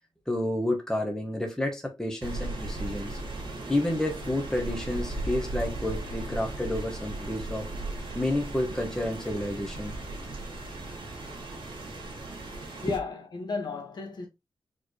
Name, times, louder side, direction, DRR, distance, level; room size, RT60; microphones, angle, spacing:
voice 1, 0.3-3.2 3.7-7.7 8.1-9.9, left 1 dB, 5° left, 0.9 m, -30 dB
Rain, 2.2-13.0, right 2 dB, 65° right, 1.7 m, -37 dB
voice 2, 12.8-14.3, left 4 dB, 55° left, 1.2 m, -34 dB
4.5 x 3.1 x 3.0 m
wide cardioid pair, 140°, 9 cm